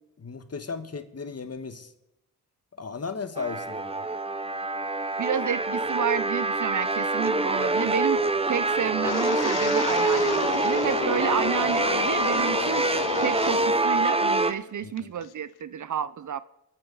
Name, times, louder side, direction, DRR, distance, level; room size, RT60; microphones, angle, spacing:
voice 1, 0.2-1.9 2.8-4.0 14.8-15.1, left 5 dB, 40° left, 10 dB, 1.4 m, -36 dB
sound 1, 3.4-14.5, right 2 dB, 15° right, 0.9 m, -25 dB
voice 2, 5.2-12.9 13.2-16.4, right 8 dB, 50° right, 17 dB, 0.6 m, -30 dB
Wind, 9.0-13.8 14.1-14.5 15.0-15.3, left 10 dB, 75° left, 0.8 m, -32 dB
24.0 x 9.0 x 4.0 m, 0.89 s
cardioid pair, 55°, 39 cm